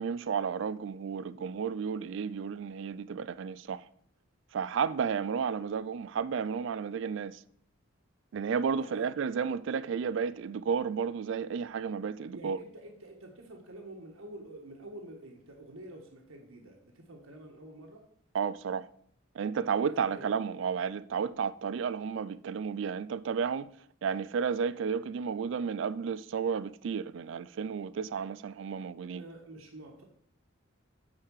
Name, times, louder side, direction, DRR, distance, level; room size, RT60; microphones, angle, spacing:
voice 1, 0.0-3.9 4.5-7.4 8.3-12.6 18.3-18.9 19.4-23.7 24.0-29.2, right 6 dB, 60° right, 0.3 m, -32 dB
voice 2, 8.8-9.1 12.3-18.0 20.1-20.3 29.1-30.0, right 1 dB, 80° right, 1.5 m, -48 dB
9.3 x 4.9 x 4.7 m
head